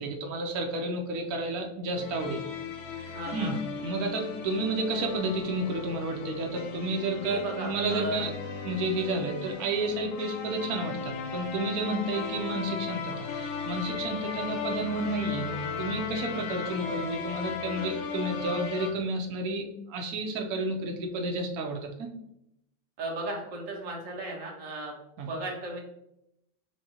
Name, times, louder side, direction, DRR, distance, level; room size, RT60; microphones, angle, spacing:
voice 1, 0.0-2.4 3.3-3.5 3.8-8.3 8.6-22.1 25.2-25.3, right 2 dB, 75° right, 2 dB, 0.8 m, -31 dB
sound 1, 2.0-18.9, left 6 dB, 75° left, 1.3 m, -36 dB
voice 2, 3.0-3.6 7.1-8.3 15.6-16.0 23.0-24.9 25.3-25.8, right 1 dB, 50° right, -1 dB, 1.1 m, -36 dB
6.4 x 2.7 x 2.8 m, 0.81 s
omnidirectional pair, 2.3 m